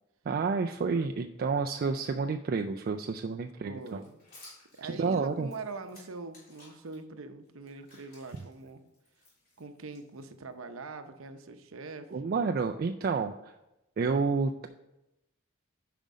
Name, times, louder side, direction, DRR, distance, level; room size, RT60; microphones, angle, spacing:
voice 1, 0.3-4.0 4.9-5.5 12.1-13.5 14.0-14.7, right 4 dB, 45° right, 5 dB, 0.3 m, -30 dB
voice 2, 3.6-4.2 4.7-8.8 9.6-12.1, right 3 dB, 65° right, 8 dB, 0.7 m, -43 dB
sound 1, 3.8-7.0 7.4-10.5, left 2 dB, 45° left, 3.4 m, -57 dB
9.1 x 5.1 x 5.2 m, 0.92 s
head